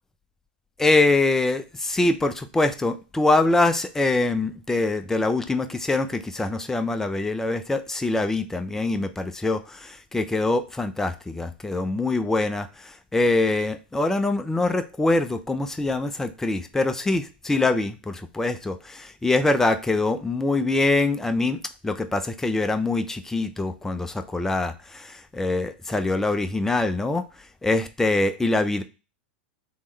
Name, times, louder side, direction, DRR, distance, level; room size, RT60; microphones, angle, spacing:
voice 1, 0.8-27.3 27.6-28.8, left 2 dB, 10° left, 8 dB, 0.5 m, -24 dB
3.6 x 3.1 x 4.3 m, 0.31 s
hypercardioid pair, 105°, 5 cm